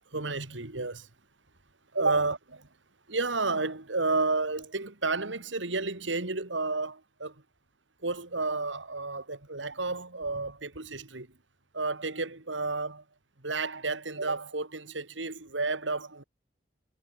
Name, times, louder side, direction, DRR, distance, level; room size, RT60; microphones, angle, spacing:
voice 1, 0.1-1.1 1.9-2.4 3.1-7.3 8.0-11.3 11.7-13.0 13.4-16.2, right 3 dB, 90° right, 2.7 m, -31 dB
head